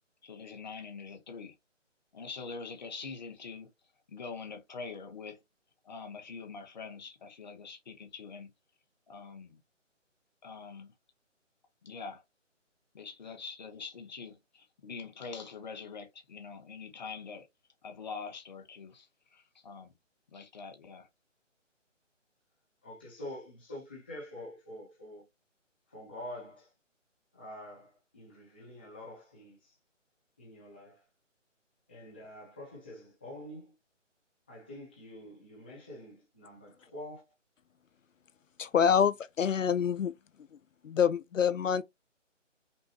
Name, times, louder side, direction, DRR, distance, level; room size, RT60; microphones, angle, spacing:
voice 1, 0.2-1.5 2.1-3.7 4.1-5.4 5.8-8.5 9.1-9.6 10.4-10.9 11.8-12.2 12.9-17.5 17.8-19.9 20.3-21.1, left 5 dB, 35° left, 1.1 m, -44 dB
voice 2, 22.8-25.2 25.9-26.7 27.3-29.7 30.4-31.0 31.9-33.7 34.5-37.2, left 1 dB, 10° left, 0.6 m, -46 dB
voice 3, 38.6-40.1 40.8-41.8, left 7 dB, 80° left, 0.5 m, -26 dB
5.5 x 2.7 x 2.8 m
figure-of-eight pair, 150°, 38 cm